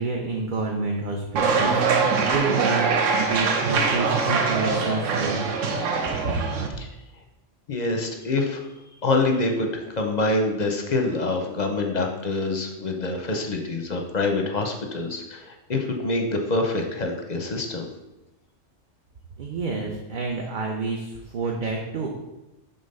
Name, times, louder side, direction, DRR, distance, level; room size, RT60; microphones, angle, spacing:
voice 1, 0.0-2.9 3.2-5.5 6.2-6.4 19.4-22.1, right 3 dB, 50° right, 0 dB, 0.7 m, -28 dB
sound 1, 1.4-6.7, right 4 dB, 80° right, 1.1 m, -23 dB
voice 2, 7.7-8.6 9.0-17.9, left 2 dB, 45° left, 3 dB, 0.6 m, -26 dB
5.5 x 3.5 x 5.3 m, 0.97 s
omnidirectional pair, 1.3 m